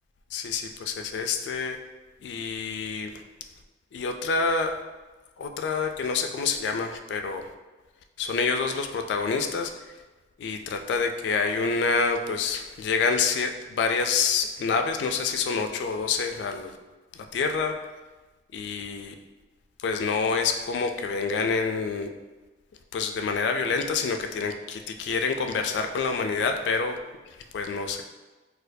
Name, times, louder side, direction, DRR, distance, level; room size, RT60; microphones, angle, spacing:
voice 1, 0.3-1.8 2.2-3.1 3.9-4.7 5.4-7.5 8.2-9.7 10.4-16.8 17.3-17.7 18.5-19.1 19.8-22.1 22.9-27.0 27.5-28.0, left 5 dB, 80° left, 6 dB, 0.3 m, -27 dB
4.2 x 2.3 x 2.6 m, 1.2 s
head